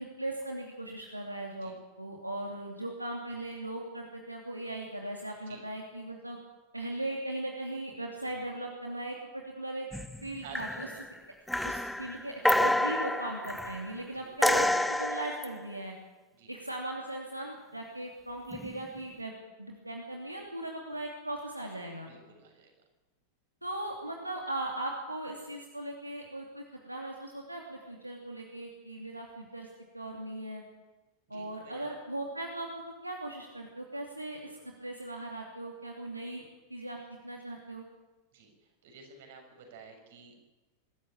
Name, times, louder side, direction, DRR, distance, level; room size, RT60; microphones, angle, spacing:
voice 1, 0.0-1.7 2.0-6.4 6.7-9.9 10.2-10.9 11.6-15.9 16.5-19.3 19.6-22.1 23.6-29.7 29.9-30.6 31.3-36.4 36.7-37.0 37.2-37.8, right 1 dB, 85° right, 1 dB, 2.7 m, -38 dB
sound 1, 9.9-10.3 10.6-11.1 11.5-13.9 14.4-15.5 18.5-18.8, left 1 dB, 5° left, 1.4 m, -29 dB
voice 2, 10.4-11.0 11.5-11.7 14.1-14.3 16.3-16.5 22.0-22.7 31.3-31.9 38.3-40.5, right 5 dB, 55° right, 4 dB, 6.6 m, -51 dB
25.0 x 14.0 x 8.9 m, 1.1 s
figure-of-eight pair, 90°, 0 cm